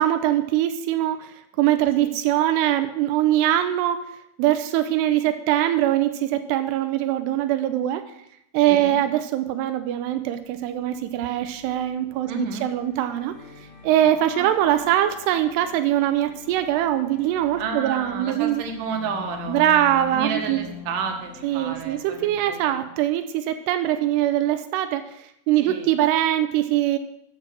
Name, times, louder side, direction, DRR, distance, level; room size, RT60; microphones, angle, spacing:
voice 1, 0.0-4.1 4.4-8.0 8.5-12.3 12.6-13.3 13.8-18.6 19.5-20.6 21.4-25.2 25.5-27.0, right 12 dB, 90° right, 9 dB, 2.8 m, -22 dB
sound 1, 9.8-22.8, left 7 dB, 50° left, 3.2 m, -45 dB
voice 2, 12.2-12.7 14.0-14.1 14.4-14.5 17.5-19.6 20.1-22.8 25.6-25.9, right 5 dB, 60° right, 3 dB, 2.8 m, -31 dB
12.5 x 6.3 x 6.2 m, 0.77 s
omnidirectional pair, 4.7 m